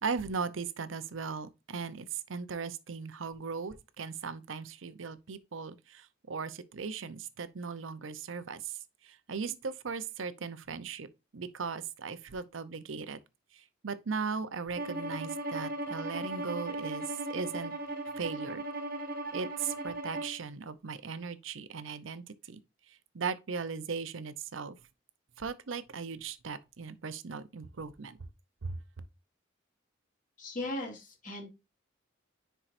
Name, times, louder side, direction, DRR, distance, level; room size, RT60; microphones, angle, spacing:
voice 1, 0.0-11.1 11.3-13.2 13.5-17.7 18.2-18.6 19.3-22.6 22.9-24.8 25.4-28.2 28.6-29.0, right 5 dB, 80° right, 0.7 m, -38 dB
Bowed string instrument, 14.8-20.4, right 2 dB, 45° right, 1.1 m, -37 dB
voice 2, 30.4-31.5, left 1 dB, 40° left, 2.5 m, -38 dB
10.0 x 4.6 x 2.6 m
head